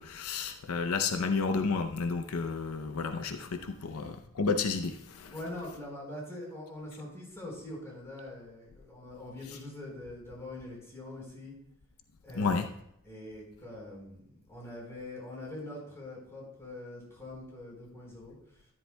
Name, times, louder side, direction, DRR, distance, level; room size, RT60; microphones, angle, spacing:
voice 1, 0.0-5.3 12.3-12.7, left 4 dB, 80° left, 7 dB, 0.6 m, -31 dB
voice 2, 5.3-11.5 12.2-12.6 13.0-18.7, left 1 dB, 15° left, -4 dB, 4.3 m, -43 dB
13.5 x 11.0 x 2.2 m, 0.74 s
head